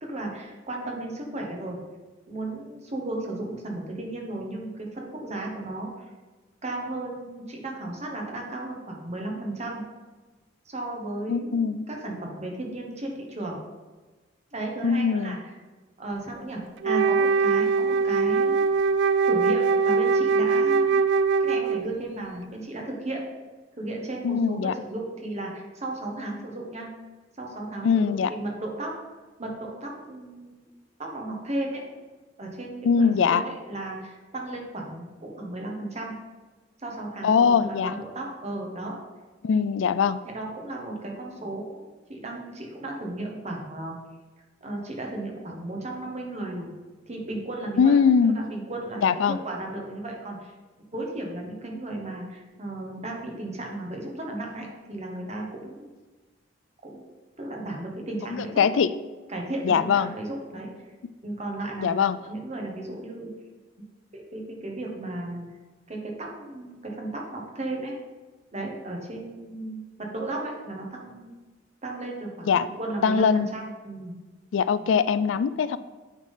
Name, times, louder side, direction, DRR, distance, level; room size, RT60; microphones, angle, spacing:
voice 1, 0.0-1.8 2.3-5.9 6.6-9.8 10.6-13.6 14.5-15.5 16.0-18.7 19.2-21.0 21.4-23.2 23.8-26.9 27.4-29.0 29.4-30.6 31.0-31.8 32.4-36.1 36.8-39.0 39.5-39.6 40.2-44.0 44.6-46.7 47.1-47.9 48.3-50.5 50.9-55.9 56.8-57.0 57.4-58.6 59.3-60.7 61.2-63.3 64.1-65.4 65.9-67.9 68.5-71.3 71.8-74.1, right 2 dB, 35° right, 0 dB, 1.4 m, -35 dB
voice 2, 11.3-11.8 14.8-15.4 24.2-24.7 27.8-28.3 32.8-33.4 37.2-37.9 39.4-40.2 47.8-48.4 49.0-49.4 58.3-58.9 59.6-60.1 61.8-62.2 72.4-72.7 73.0-73.5 74.5-75.8, left 6 dB, 80° left, 15 dB, 0.3 m, -22 dB
Wind instrument woodwind instrument, 16.8-22.0, right 5 dB, 65° right, 0.3 m, -22 dB
8.9 x 3.7 x 5.5 m, 1.3 s
head